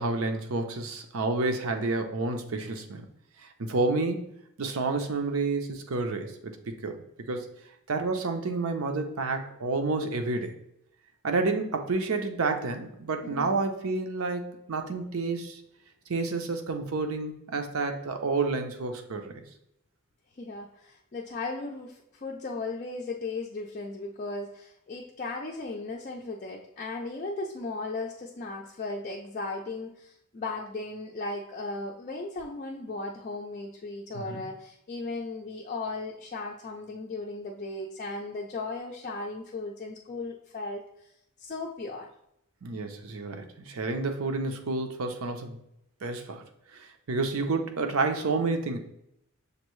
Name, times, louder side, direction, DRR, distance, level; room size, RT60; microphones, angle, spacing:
voice 1, 0.0-3.1 3.6-4.3 4.6-7.0 7.3-7.5 7.9-10.6 11.2-15.6 16.1-19.4 34.1-34.4 42.6-45.6 46.0-46.4 46.7-48.8, right 3 dB, 75° right, 5 dB, 0.6 m, -30 dB
voice 2, 13.2-13.5 20.4-40.8 41.4-42.1, left 3 dB, 35° left, -2 dB, 0.4 m, -36 dB
6.5 x 2.6 x 3.1 m, 0.79 s
head